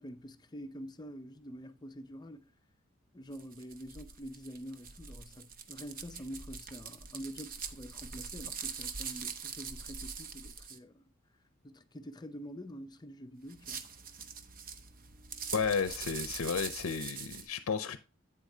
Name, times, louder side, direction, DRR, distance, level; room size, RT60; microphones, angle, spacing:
voice 1, 0.0-2.5 3.1-11.0 11.6-13.8, equal, 20° left, 0.5 m, -46 dB
sound 1, 3.3-10.8 13.5-17.5, right 6 dB, 40° right, 0.7 m, -43 dB
voice 2, 15.5-18.0, left 5 dB, 80° left, 0.5 m, -33 dB
8.5 x 8.1 x 2.7 m
head